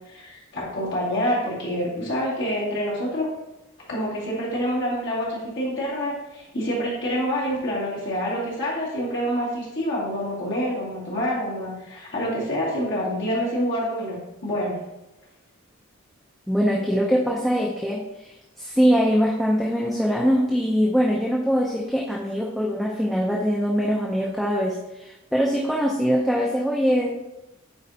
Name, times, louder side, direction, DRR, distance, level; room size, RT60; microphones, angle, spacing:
voice 1, 0.1-3.3 3.9-14.8, equal, 55° left, -6 dB, 2.3 m, -27 dB
voice 2, 16.5-27.3, equal, ahead, -4 dB, 0.5 m, -23 dB
8.2 x 4.2 x 2.8 m, 0.95 s
head